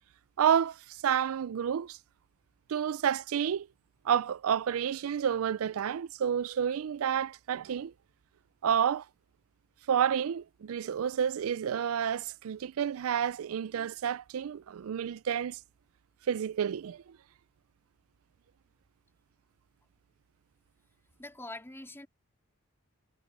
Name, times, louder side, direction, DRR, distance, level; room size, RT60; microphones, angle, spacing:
voice 1, 0.4-2.0 2.7-3.7 4.0-7.9 8.6-9.1 9.9-15.6 16.3-17.2, right 8 dB, 80° right, 0.4 m, -30 dB
voice 2, 21.2-22.1, left 2 dB, 10° left, 3.7 m, -44 dB
head